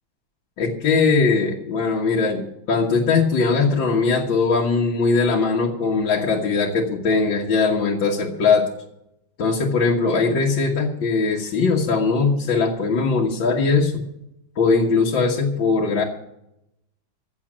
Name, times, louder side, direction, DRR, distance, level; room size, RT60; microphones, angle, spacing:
voice 1, 0.6-8.7 9.4-14.1 14.6-16.0, left 4 dB, 70° left, -2 dB, 2.2 m, -20 dB
15.0 x 7.3 x 8.6 m, 0.81 s
omnidirectional pair, 2.1 m